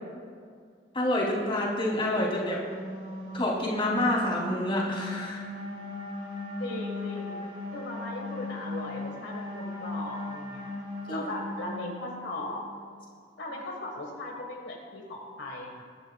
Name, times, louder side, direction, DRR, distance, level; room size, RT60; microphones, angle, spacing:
voice 1, 0.9-2.6 3.3-5.4 11.1-11.2, left 1 dB, 30° left, -5 dB, 2.9 m, -28 dB
sound 1, 2.1-12.6, left 1 dB, 30° right, 2.6 m, -38 dB
voice 2, 6.6-7.4 7.7-10.7 11.1-12.6 13.4-15.8, left 2 dB, 75° left, -1 dB, 1.5 m, -38 dB
22.5 x 10.5 x 2.3 m, 2.1 s
head